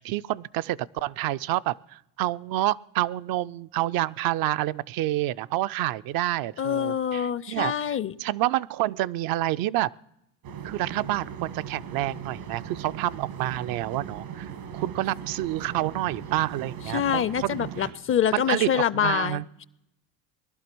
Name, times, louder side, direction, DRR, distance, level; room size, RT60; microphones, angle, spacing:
voice 1, 0.0-9.9 10.6-17.9 18.3-19.4, right 15 dB, 65° right, 15 dB, 0.5 m, -28 dB
voice 2, 6.6-8.1 16.9-19.6, left 9 dB, 35° left, 19 dB, 0.5 m, -26 dB
sound 1, 10.4-17.9, right 8 dB, 85° right, 2.1 m, -39 dB
18.5 x 11.5 x 6.1 m, 0.84 s
supercardioid pair, 90°, 39 cm